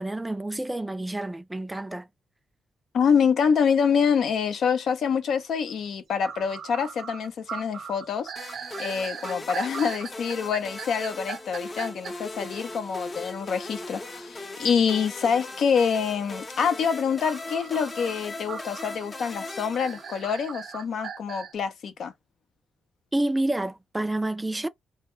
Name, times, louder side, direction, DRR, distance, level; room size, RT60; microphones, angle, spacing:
voice 1, 0.0-2.1 23.1-24.7, right 1 dB, 15° right, 0.3 m, -28 dB
voice 2, 2.9-8.3 8.8-22.1, left 6 dB, 70° left, 0.5 m, -26 dB
sound 1, 5.8-5.9 6.2-12.1 17.2-21.5, right 7 dB, 65° right, 0.6 m, -38 dB
sound 2, 8.4-20.5, left 2 dB, 30° left, 0.7 m, -39 dB
2.1 x 2.1 x 3.0 m
cardioid pair, 80°, 0 cm